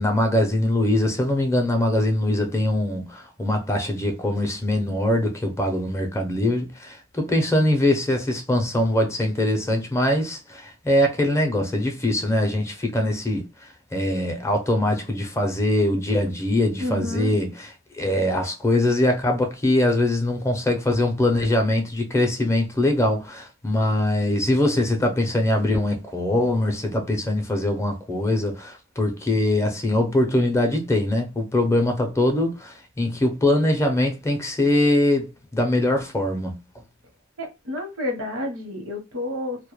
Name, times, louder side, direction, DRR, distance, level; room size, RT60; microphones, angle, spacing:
voice 1, 0.0-13.5 13.9-17.7 17.9-36.6, left 1 dB, 15° left, 0.5 m, -22 dB
voice 2, 16.8-17.3 37.4-39.7, left 2 dB, 75° right, 0.8 m, -30 dB
2.2 x 2.1 x 2.9 m
head